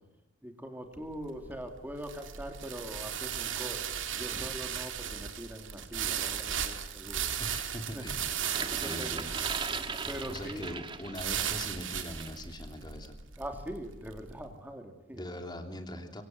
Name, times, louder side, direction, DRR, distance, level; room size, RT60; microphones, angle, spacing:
voice 1, 0.4-7.2 7.9-8.3 8.6-9.2 9.9-10.7 13.4-15.2, equal, 10° right, 4 dB, 3.0 m, -42 dB
sound 1, 1.0-14.3, right 9 dB, 65° right, 2.8 m, -36 dB
voice 2, 7.4-8.4 8.7-9.5 10.3-13.2 15.1-16.2, left 1 dB, 20° left, 5 dB, 3.1 m, -41 dB
sound 2, 8.3-11.7 12.2-12.4, right 4 dB, 25° right, 1.6 m, -39 dB
26.5 x 24.5 x 7.9 m, 0.97 s
head